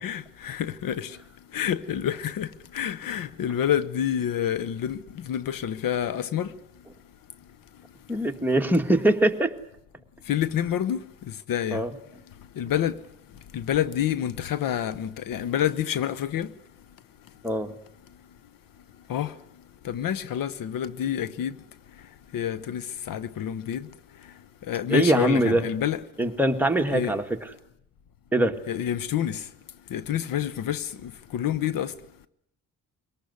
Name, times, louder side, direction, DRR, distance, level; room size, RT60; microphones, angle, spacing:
voice 1, 0.0-1.1 1.5-2.5 2.7-5.0 5.3-6.5 10.3-11.0 11.5-11.8 12.6-12.9 13.5-16.5 19.1-19.3 19.8-21.5 22.3-23.9 24.7-26.0 26.9-27.1 28.7-29.4 29.9-31.9, left 10 dB, 75° left, 1.0 m, -28 dB
voice 2, 8.1-9.5 11.7-11.9 17.4-17.7 24.9-25.6 26.2-27.2 28.3-28.6, right 1 dB, 5° right, 1.8 m, -22 dB
23.0 x 18.5 x 9.7 m
cardioid pair, 90°, 34 cm